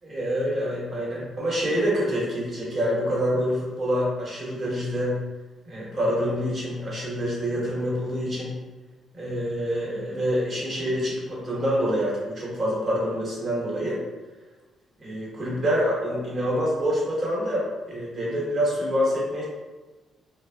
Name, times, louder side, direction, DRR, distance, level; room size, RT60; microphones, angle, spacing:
voice 1, 0.0-5.1 5.6-8.5 9.1-14.0 15.0-19.4, equal, 40° right, -5 dB, 1.1 m, -26 dB
3.4 x 2.1 x 2.3 m, 1.3 s
cardioid pair, 90°, 0 cm